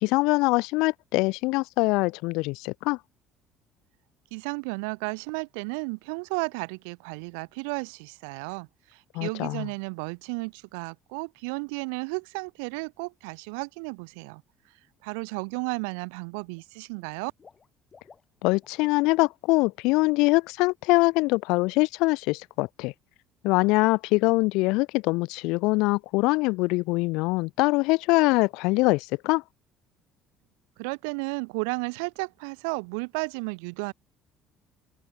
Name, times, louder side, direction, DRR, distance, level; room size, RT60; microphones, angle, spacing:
voice 1, 0.0-3.0 9.1-9.7 18.4-22.9 23.4-29.4, left 24 dB, 75° left, 0.4 m, -23 dB
voice 2, 4.3-14.4 15.0-17.3 30.8-33.9, right 35 dB, 80° right, 0.7 m, -33 dB
Water / Liquid, 14.8-15.1 15.5-16.1 16.4-19.0 19.2-19.5 19.8-19.9, left 5 dB, 35° left, 2.9 m, -58 dB
open air
hypercardioid pair, 65°, 0 cm